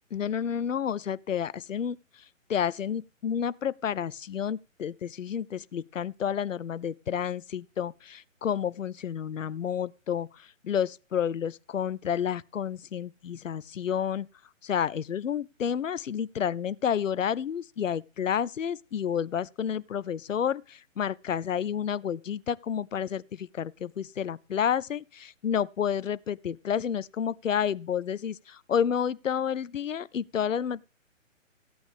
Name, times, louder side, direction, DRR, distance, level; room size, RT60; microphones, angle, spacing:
voice 1, 0.1-2.0 2.5-14.3 14.6-30.8, left 8 dB, 70° left, 0.6 m, -30 dB
15.5 x 8.7 x 3.5 m
figure-of-eight pair, 135°, 40 cm